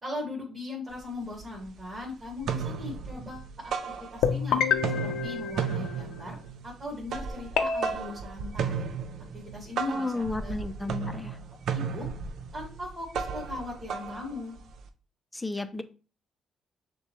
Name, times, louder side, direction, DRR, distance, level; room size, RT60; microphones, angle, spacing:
voice 1, 0.0-3.7 4.1-4.6 5.0-6.4 6.6-8.9 9.5-10.6 11.7-12.1 12.5-14.5, left 2 dB, 25° right, -7 dB, 2.1 m, -39 dB
sound 1, 0.9-1.0 1.3-2.0 2.3-4.5 4.7-14.9, right 6 dB, 70° right, 0.5 m, -35 dB
sound 2, 4.2-6.4 7.6-7.9, left 6 dB, 80° left, 0.5 m, -28 dB
voice 2, 9.9-11.4 15.3-15.8, left 2 dB, 15° left, 10 dB, 0.4 m, -32 dB
6.4 x 2.2 x 3.1 m, 0.35 s
cardioid pair, 90°, 0 cm